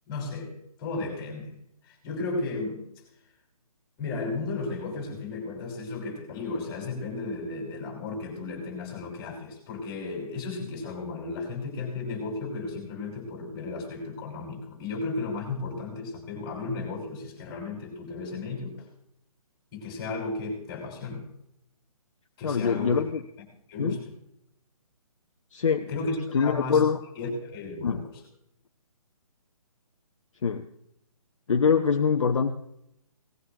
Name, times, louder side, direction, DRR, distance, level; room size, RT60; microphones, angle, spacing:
voice 1, 0.1-0.5 0.8-1.5 1.8-2.9 4.0-18.8 19.7-21.2 22.4-22.9 23.7-24.0 25.9-26.8 27.2-28.0, left 3 dB, 20° left, -1 dB, 5.7 m, -34 dB
voice 2, 22.4-23.2 23.8-24.0 25.5-25.9 26.3-27.0 27.8-28.1 30.4-30.7 31.5-32.5, left 6 dB, 55° left, 5 dB, 1.0 m, -24 dB
19.0 x 16.0 x 3.0 m, 0.77 s
figure-of-eight pair, 140°, 19 cm